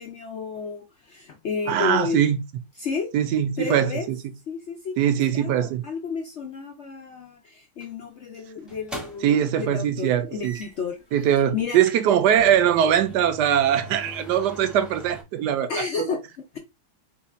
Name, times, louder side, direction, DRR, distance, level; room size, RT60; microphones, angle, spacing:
voice 1, 0.0-2.2 2.8-3.1 3.6-4.1 4.5-4.9 5.3-11.8 15.7-16.2, left 5 dB, 80° left, 0.6 m, -32 dB
voice 2, 1.7-2.4 3.1-4.2 5.0-5.8 9.2-10.6 11.1-16.1, right 9 dB, 70° right, 1.1 m, -21 dB
sound 1, 7.8-8.0 8.7-9.4 10.4-10.9 11.3-11.4 11.7-15.2, right 1 dB, ahead, 0.6 m, -41 dB
4.2 x 2.3 x 4.2 m
omnidirectional pair, 2.1 m